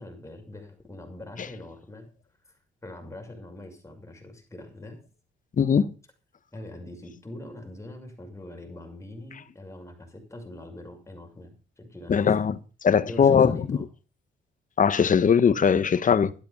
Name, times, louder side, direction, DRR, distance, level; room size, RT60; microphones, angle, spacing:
voice 1, 0.0-2.1 2.5-2.6 2.8-5.0 6.5-12.5 13.1-13.8, left 1 dB, 15° left, 6.3 m, -43 dB
voice 2, 5.6-5.9 12.1-12.5 12.8-13.8 14.8-16.3, left 7 dB, 40° left, 1.1 m, -20 dB
12.5 x 12.0 x 5.4 m
cardioid pair, 90°, 20 cm